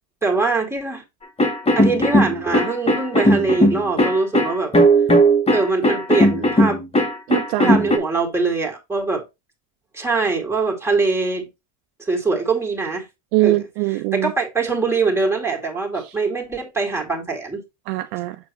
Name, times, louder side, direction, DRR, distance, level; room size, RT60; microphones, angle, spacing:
voice 1, 0.2-1.0 1.8-4.7 5.5-6.8 7.6-9.2 9.9-11.5 12.0-13.1 13.4-13.6 14.1-17.6, right 4 dB, 5° right, 2.1 m, -22 dB
sound 1, 1.4-8.0, equal, 10° left, 1.1 m, -17 dB
voice 2, 7.3-7.8 13.3-14.3 16.0-16.1 17.9-18.4, right 19 dB, 75° right, 0.6 m, -22 dB
7.5 x 4.5 x 3.0 m
supercardioid pair, 110°, 49 cm